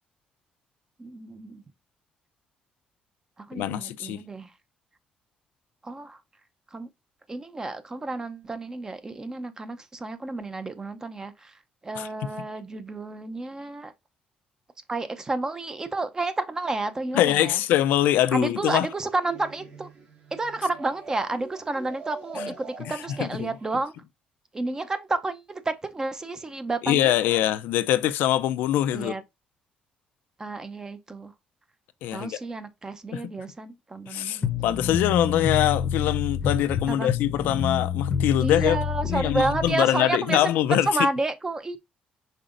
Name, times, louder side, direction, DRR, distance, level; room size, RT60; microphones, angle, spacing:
voice 1, 1.0-1.6 3.4-4.5 5.8-6.2 6.7-6.9 7.3-13.9 14.9-17.6 18.3-19.9 20.3-24.0 24.5-27.4 28.9-29.2 30.4-31.3 32.1-34.7 36.9-37.1 38.4-41.8, right 2 dB, 20° right, 0.7 m, -31 dB
voice 2, 3.5-4.2 12.0-12.1 17.1-18.9 22.4-22.5 23.2-23.5 26.8-29.1 32.0-32.3 33.1-33.2 34.1-38.8 39.1-40.9, left 13 dB, 85° left, 0.4 m, -23 dB
sound 1, 18.1-23.8, right 4 dB, 45° right, 1.9 m, -44 dB
sound 2, 34.4-39.7, left 6 dB, 35° left, 0.7 m, -28 dB
5.4 x 3.9 x 2.5 m
cardioid pair, 120°, 3 cm